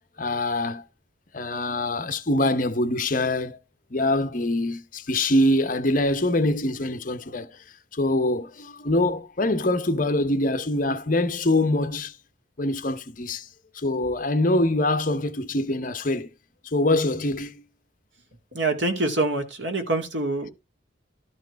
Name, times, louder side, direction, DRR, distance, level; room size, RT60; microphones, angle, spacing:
voice 1, 0.2-0.8 1.3-3.6 3.9-7.5 7.9-12.1 12.6-13.5 13.7-16.3 16.6-17.6, left 1 dB, 45° left, 0.8 m, -24 dB
voice 2, 18.5-20.5, right 2 dB, 75° right, 2.1 m, -25 dB
12.5 x 4.6 x 4.5 m
head